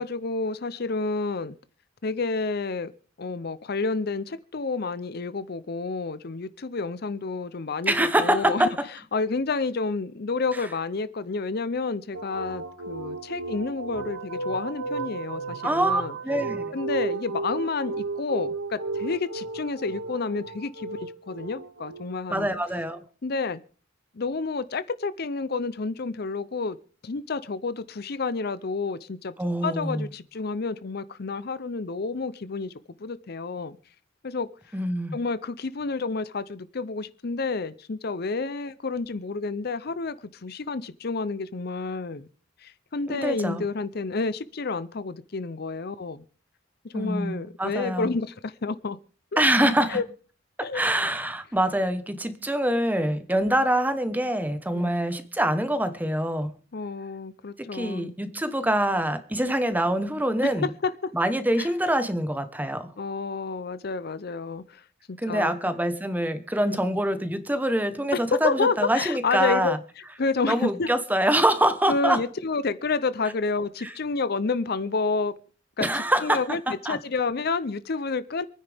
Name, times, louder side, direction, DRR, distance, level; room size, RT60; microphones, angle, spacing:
voice 1, 0.0-1.6 2.0-2.9 3.2-8.7 9.1-16.2 16.7-22.5 23.2-23.6 24.2-26.8 27.0-29.3 29.6-32.7 33.0-33.8 34.2-34.5 35.1-42.3 42.6-46.2 46.8-49.0 49.3-49.4 49.9-50.0 50.6-50.9 54.7-54.9 56.7-58.1 60.6-61.1 61.6-61.7 63.0-64.8 65.1-65.8 66.6-66.8 68.1-69.7 70.2-70.9 71.9-75.3 75.8-78.5, left 4 dB, 50° left, 0.6 m, -29 dB
voice 2, 7.9-8.7 15.6-16.7 22.3-23.0 29.4-30.1 34.7-35.2 43.1-43.6 46.9-48.1 49.4-50.0 50.6-56.5 57.7-60.7 61.1-62.9 65.2-69.8 70.5-72.2 75.8-76.4 76.7-77.0, right 1 dB, 10° right, 1.1 m, -25 dB
sound 1, 12.1-22.8, right 3 dB, 85° right, 2.1 m, -34 dB
26.5 x 9.9 x 3.5 m
head